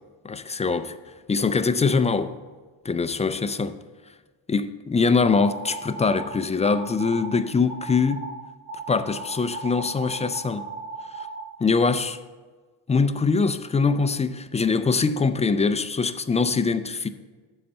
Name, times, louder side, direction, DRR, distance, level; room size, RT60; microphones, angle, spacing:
voice 1, 0.2-0.9 1.3-2.3 2.8-3.7 4.5-8.2 8.9-10.6 11.1-11.3 11.6-12.2 12.9-17.1, left 4 dB, 15° left, 11 dB, 0.3 m, -23 dB
sound 1, 5.3-6.3 6.6-7.3 7.7-8.3 8.7-11.4, right 3 dB, 85° right, 1.5 m, -36 dB
7.8 x 4.2 x 6.8 m, 1.4 s
supercardioid pair, 65°, 48 cm